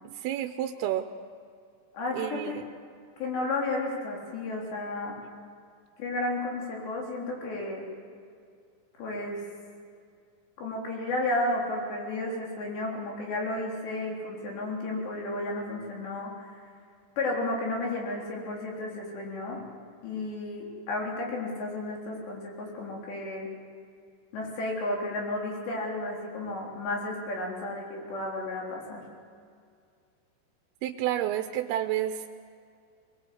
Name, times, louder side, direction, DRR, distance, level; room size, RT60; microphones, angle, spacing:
voice 1, 0.0-1.1 2.1-2.6 30.8-32.3, right 12 dB, 80° right, 7 dB, 2.5 m, -30 dB
voice 2, 1.9-2.6 3.2-5.2 6.0-7.8 9.0-9.4 10.6-16.6 17.2-19.6 20.0-23.5 24.3-29.0, left 2 dB, 85° left, -2 dB, 6.0 m, -32 dB
23.5 x 20.5 x 7.9 m, 2.3 s
omnidirectional pair, 4.8 m